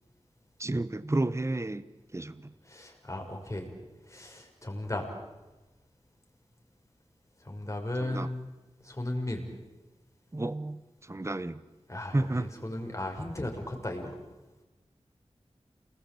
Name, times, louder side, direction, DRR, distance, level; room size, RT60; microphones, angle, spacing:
voice 1, 0.6-1.9 2.1-2.5 8.0-8.3 10.3-11.6 12.1-12.5, right 2 dB, 25° right, 15 dB, 1.1 m, -31 dB
voice 2, 2.6-3.7 4.0-5.1 7.4-8.5 8.8-9.5 11.9-14.2, left 1 dB, 25° left, 2 dB, 6.0 m, -36 dB
28.5 x 20.0 x 8.7 m, 1.1 s
wide cardioid pair, 70°, 11 cm